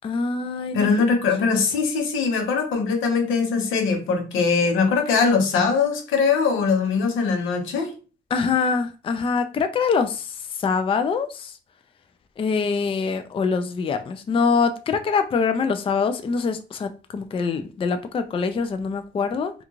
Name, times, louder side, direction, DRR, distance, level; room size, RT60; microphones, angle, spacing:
voice 1, 0.0-1.1 8.3-11.5 12.4-19.5, left 5 dB, 30° left, 0.3 m, -24 dB
voice 2, 0.7-7.9, left 5 dB, 85° left, 0.7 m, -21 dB
2.4 x 2.4 x 2.9 m
cardioid pair, 90°, 20 cm